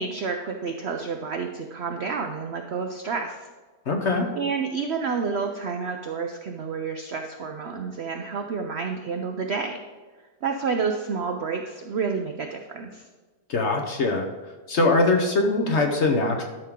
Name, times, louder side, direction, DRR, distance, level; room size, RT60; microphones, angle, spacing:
voice 1, 0.0-3.5 4.3-9.8 10.4-13.1, right 5 dB, 75° right, 4 dB, 0.6 m, -29 dB
voice 2, 3.9-4.3 13.5-14.3 14.7-16.4, left 2 dB, 50° left, 3 dB, 1.0 m, -22 dB
12.0 x 5.9 x 3.6 m, 1.3 s
omnidirectional pair, 1.8 m